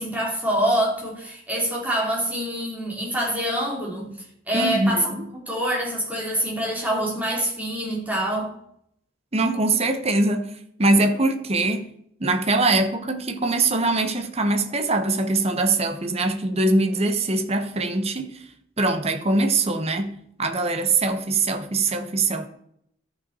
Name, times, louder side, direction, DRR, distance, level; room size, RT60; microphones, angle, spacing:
voice 1, 0.0-4.1 4.5-5.1 5.5-8.5, right 1 dB, 10° right, 2.9 m, -25 dB
voice 2, 4.5-5.3 9.3-10.5 10.8-11.9 12.2-18.4 18.8-22.5, right 2 dB, 30° right, 0.9 m, -22 dB
12.5 x 5.7 x 4.2 m
head